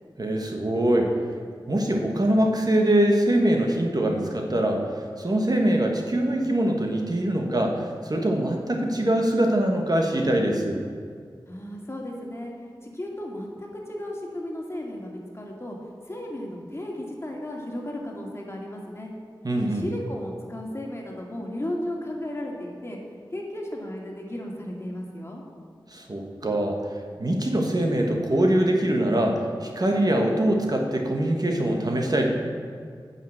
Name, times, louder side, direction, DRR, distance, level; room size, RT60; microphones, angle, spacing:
voice 1, 0.2-1.1 1.7-10.8 19.4-19.8 25.9-26.8 27.2-32.3, right 1 dB, 50° right, 1 dB, 1.4 m, -23 dB
voice 2, 11.5-12.5 12.9-15.8 16.1-19.1 19.6-23.0 23.3-25.4, left 1 dB, 30° left, -1 dB, 2.2 m, -34 dB
9.1 x 5.8 x 7.7 m, 2.1 s
wide cardioid pair, 45°, 9 cm